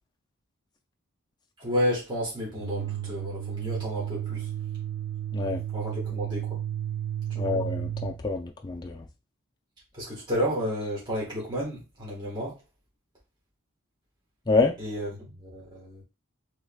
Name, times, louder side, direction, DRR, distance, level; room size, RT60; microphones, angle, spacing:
voice 1, 1.6-4.5 5.7-6.6 7.4-7.6 9.9-12.6 14.8-16.0, equal, 20° right, 1.4 m, -31 dB
sound 1, 2.6-8.2, right 11 dB, 65° right, 0.8 m, -33 dB
voice 2, 7.4-9.0 14.5-14.7, left 3 dB, 20° left, 0.3 m, -27 dB
4.7 x 3.1 x 2.3 m
head